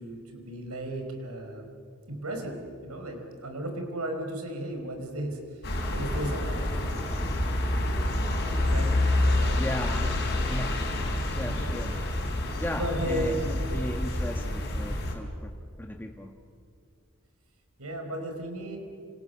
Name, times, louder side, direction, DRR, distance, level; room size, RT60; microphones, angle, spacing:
voice 1, 0.0-1.6 2.1-2.6 2.8-5.4 5.9-6.6 8.7-8.9 9.2-9.6 12.7-13.5 17.8-18.8, right 1 dB, 85° right, 4 dB, 5.0 m, -34 dB
sound 1, 5.6-15.1, left 1 dB, 50° left, 5.3 m, -28 dB
voice 2, 9.5-10.2 10.5-10.8 11.3-11.9 12.6-15.5 15.8-16.3, left 1 dB, 10° left, 2 dB, 1.4 m, -36 dB
30.0 x 27.0 x 7.0 m, 2.4 s
head